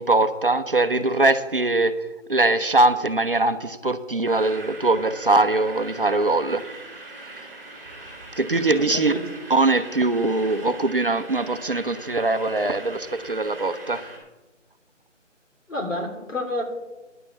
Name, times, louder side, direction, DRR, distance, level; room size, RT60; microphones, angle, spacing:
voice 1, 0.0-1.9 2.3-6.6 8.4-9.1 9.5-14.0, right 2 dB, 45° right, 10 dB, 0.6 m, -21 dB
sound 1, 4.2-14.2, right 2 dB, 15° right, 2.3 m, -41 dB
voice 2, 8.7-9.2 15.7-16.6, left 2 dB, 80° left, 2 dB, 3.3 m, -29 dB
10.0 x 6.8 x 7.2 m, 1.1 s
figure-of-eight pair, 170°, 38 cm